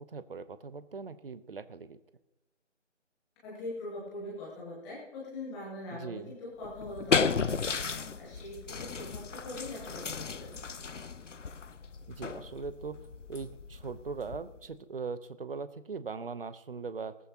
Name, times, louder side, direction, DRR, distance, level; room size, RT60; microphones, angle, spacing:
voice 1, 0.0-2.0 5.9-6.3 12.1-13.0 13.3-17.2, right 5 dB, 50° right, 14 dB, 0.9 m, -40 dB
voice 2, 3.4-10.5, left 2 dB, ahead, -6 dB, 0.8 m, -42 dB
sound 1, 6.6-14.7, left 5 dB, 75° left, 0.8 m, -34 dB
18.0 x 13.5 x 2.9 m, 1.0 s
figure-of-eight pair, 155°, 37 cm